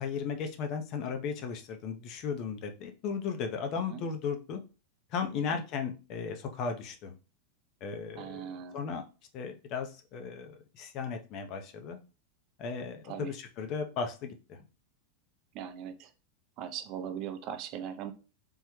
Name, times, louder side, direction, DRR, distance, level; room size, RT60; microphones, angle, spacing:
voice 1, 0.0-4.6 5.1-7.1 7.8-9.0 9.3-12.0 12.6-14.6, left 6 dB, 45° left, 6 dB, 0.6 m, -36 dB
voice 2, 8.2-8.8 13.1-13.3 15.5-16.1 16.6-18.1, right 9 dB, 45° right, 9 dB, 0.4 m, -39 dB
3.5 x 2.1 x 3.0 m, 0.33 s
hypercardioid pair, 120°, 0 cm